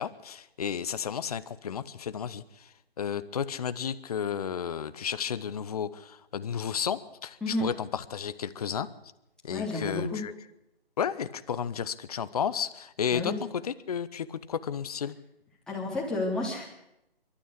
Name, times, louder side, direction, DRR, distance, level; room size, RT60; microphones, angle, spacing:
voice 1, 0.0-2.7 3.0-8.9 9.4-10.3 11.0-13.3 13.6-15.1, left 8 dB, 40° left, 14 dB, 1.0 m, -32 dB
voice 2, 9.5-10.2 13.1-13.4 15.7-16.7, left 2 dB, ahead, -4 dB, 3.3 m, -31 dB
25.5 x 13.0 x 8.4 m, 0.87 s
figure-of-eight pair, 150°, 30 cm